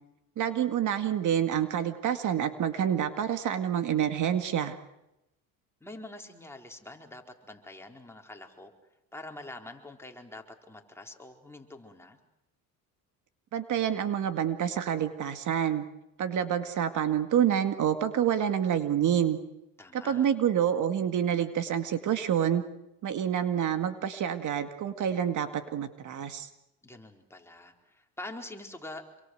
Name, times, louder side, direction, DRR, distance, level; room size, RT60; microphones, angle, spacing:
voice 1, 0.4-4.8 13.5-15.9 16.2-19.4 19.9-22.6 23.0-26.5, right 9 dB, 55° right, 9 dB, 2.1 m, -28 dB
voice 2, 5.8-8.7 9.1-12.2 19.8-20.2 26.8-29.0, left 2 dB, 5° left, 2 dB, 4.4 m, -45 dB
27.5 x 23.5 x 8.0 m, 0.89 s
cardioid pair, 100°, 37 cm